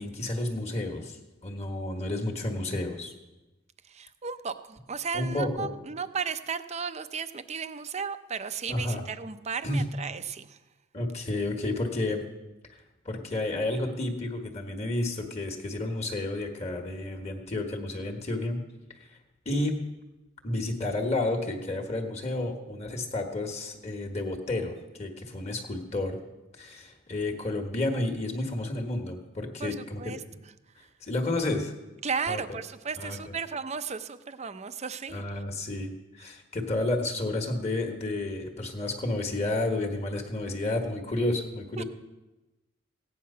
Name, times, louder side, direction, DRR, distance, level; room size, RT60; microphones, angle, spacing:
voice 1, 0.0-3.1 5.1-5.7 8.7-9.0 9.6-9.9 10.9-12.2 13.0-18.6 19.4-19.8 20.4-24.7 25.0-26.2 26.6-30.1 31.0-31.7 32.3-32.4 33.0-33.3 35.1-41.8, left 2 dB, 35° left, 2 dB, 1.5 m, -31 dB
voice 2, 3.9-10.6 29.6-30.2 32.0-35.2 41.8-41.9, right 6 dB, 35° right, 11 dB, 0.6 m, -35 dB
16.0 x 9.5 x 5.6 m, 1.1 s
head